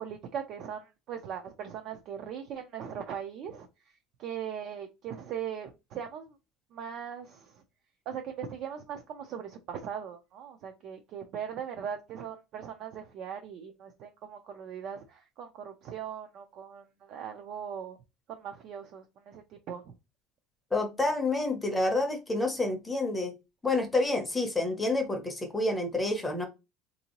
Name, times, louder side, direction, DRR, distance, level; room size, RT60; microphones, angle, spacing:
voice 1, 0.0-6.4 6.7-7.6 8.1-18.0 18.3-19.9, right 8 dB, 40° right, 0.4 m, -40 dB
voice 2, 20.7-23.3 23.6-26.4, left 2 dB, 10° left, 0.6 m, -28 dB
3.7 x 2.6 x 2.9 m
cardioid pair, 170°, 0 cm